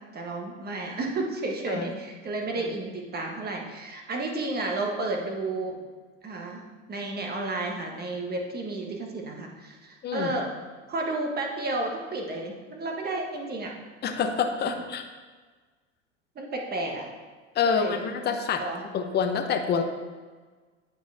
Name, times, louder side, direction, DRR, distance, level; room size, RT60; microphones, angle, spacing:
voice 1, 0.1-5.8 6.2-6.6 6.9-10.5 10.9-13.7 16.3-17.1 17.6-18.2 18.6-18.8, right 2 dB, 25° right, 1 dB, 1.4 m, -32 dB
voice 2, 14.0-15.0 17.6-18.6 18.9-19.8, left 6 dB, 30° left, 5 dB, 0.8 m, -26 dB
8.9 x 5.2 x 3.5 m, 1.4 s
hypercardioid pair, 100°, 36 cm